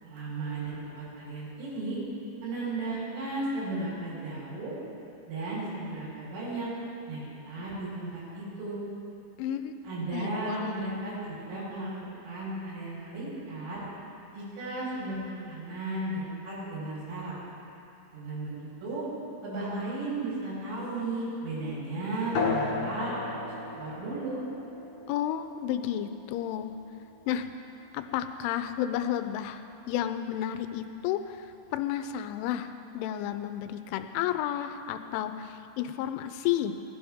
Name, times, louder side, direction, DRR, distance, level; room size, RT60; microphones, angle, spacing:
voice 1, 0.0-2.0 2.4-4.7 5.3-6.7 7.1-8.8 9.8-11.2 11.5-11.9 12.2-13.8 14.3-17.4 18.1-19.1 19.4-24.4, right 2 dB, 85° right, -8 dB, 6.9 m, -35 dB
voice 2, 9.4-9.7 10.1-10.9 25.1-26.7 27.3-27.5 27.9-36.8, left 11 dB, 80° left, 9 dB, 3.0 m, -32 dB
sound 1, 22.3-27.4, left 4 dB, 60° left, 2.2 m, -35 dB
20.5 x 15.5 x 3.6 m, 2.8 s
omnidirectional pair, 5.8 m